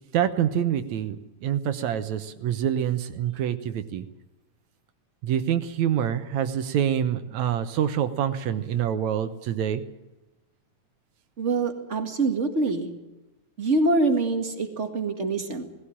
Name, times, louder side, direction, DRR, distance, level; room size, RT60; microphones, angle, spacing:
voice 1, 0.1-4.1 5.2-9.8, right 9 dB, 75° right, 10 dB, 2.2 m, -26 dB
voice 2, 11.4-12.9 13.6-15.6, right 3 dB, 30° right, 4 dB, 1.7 m, -25 dB
19.5 x 16.0 x 8.8 m, 1.0 s
omnidirectional pair, 3.4 m